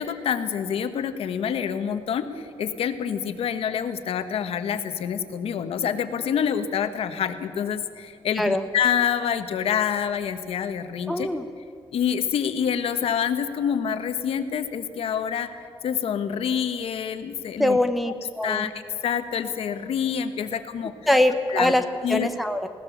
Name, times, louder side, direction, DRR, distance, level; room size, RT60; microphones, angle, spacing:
voice 1, 0.0-11.3 11.9-17.8 18.4-18.7 19.0-20.9 21.5-21.7 22.0-22.3, left 8 dB, 80° left, 9 dB, 1.4 m, -27 dB
voice 2, 11.1-11.4 17.6-18.7 21.1-21.8 22.1-22.7, left 1 dB, ahead, 6 dB, 0.9 m, -22 dB
20.5 x 17.5 x 7.3 m, 2.5 s
wide cardioid pair, 180°, 10 cm